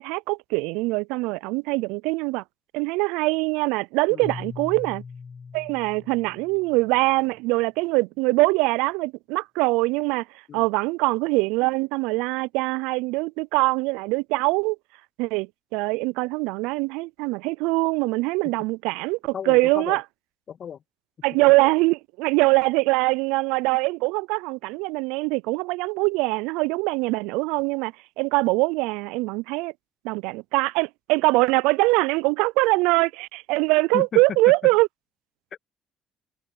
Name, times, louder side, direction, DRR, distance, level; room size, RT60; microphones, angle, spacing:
voice 1, 0.0-2.4 2.7-5.0 5.5-10.3 10.5-14.8 15.2-20.0 21.2-29.7 30.0-34.9, right 24 dB, 85° right, 0.4 m, -23 dB
Keyboard (musical), 4.2-7.1, left 5 dB, 40° left, 2.8 m, -41 dB
voice 2, 19.3-20.0 20.5-20.8 33.9-34.4 35.5-35.6, left 8 dB, 55° left, 2.0 m, -34 dB
hypercardioid pair, 60°, 0 cm